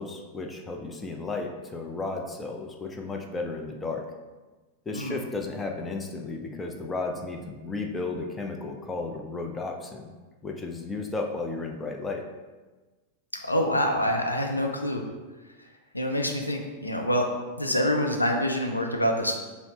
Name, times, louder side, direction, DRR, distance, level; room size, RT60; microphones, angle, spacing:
voice 1, 0.0-4.0 4.9-10.1 10.4-12.2, left 3 dB, 15° left, 2 dB, 0.5 m, -33 dB
voice 2, 13.4-15.0 15.9-17.3 17.6-19.3, equal, 85° left, 3 dB, 0.5 m, -26 dB
5.5 x 2.1 x 4.1 m, 1.3 s
figure-of-eight pair, 90°, 0 cm